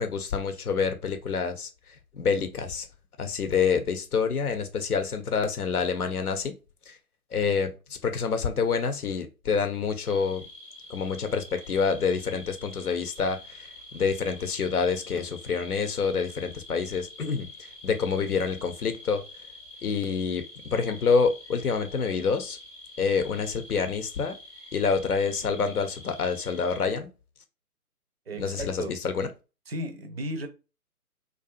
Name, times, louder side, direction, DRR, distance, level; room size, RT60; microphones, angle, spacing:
voice 1, 0.0-1.7 2.1-2.9 3.2-6.5 6.9-7.0 7.3-10.4 10.9-19.2 19.8-22.6 23.0-24.4 24.7-27.1 28.4-29.3, left 5 dB, 75° left, 0.7 m, -27 dB
sound 1, 10.0-26.8, left 2 dB, 25° left, 0.6 m, -47 dB
voice 2, 28.3-28.9 29.7-30.5, right 1 dB, 45° right, 0.4 m, -34 dB
2.5 x 2.3 x 2.3 m
figure-of-eight pair, 130°, 45 cm